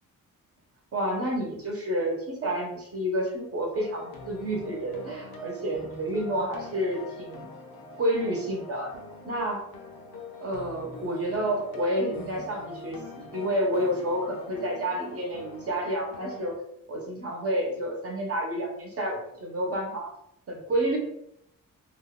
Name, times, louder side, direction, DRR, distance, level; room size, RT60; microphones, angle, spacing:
voice 1, 0.9-7.5 8.0-8.9 9.2-9.6 10.4-16.5 16.9-20.1 20.5-21.0, right 1 dB, 45° right, 0 dB, 0.9 m, -29 dB
sound 1, 3.7-16.5, left 1 dB, 80° left, 0.6 m, -44 dB
2.7 x 2.3 x 3.5 m, 0.76 s
wide cardioid pair, 160°, 34 cm